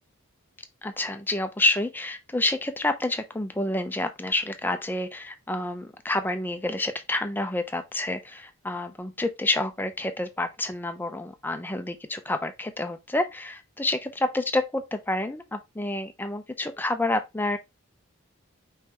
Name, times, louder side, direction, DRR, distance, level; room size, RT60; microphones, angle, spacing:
voice 1, 0.8-17.6, left 2 dB, 10° left, 0.4 m, -28 dB
5.2 x 3.2 x 2.9 m
head